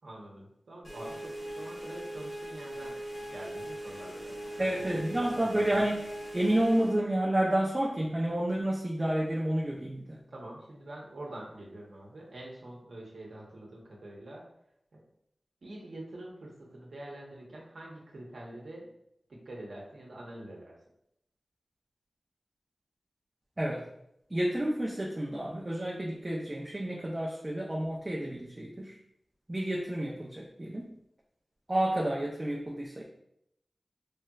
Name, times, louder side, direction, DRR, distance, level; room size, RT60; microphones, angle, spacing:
voice 1, 0.0-2.9 3.2-4.8 5.1-5.8 10.3-14.5 14.9-15.0 15.6-18.9 19.3-20.8, right 1 dB, 80° right, -3 dB, 0.8 m, -45 dB
sound 1, 0.8-7.0, right 1 dB, 60° left, 1.1 m, -40 dB
voice 2, 4.6-6.1 6.3-10.2 23.6-23.9 24.3-29.0 29.5-30.9 31.7-33.0, right 1 dB, 30° right, -3 dB, 0.5 m, -30 dB
3.2 x 2.8 x 2.3 m, 0.77 s
cardioid pair, 50°, 0 cm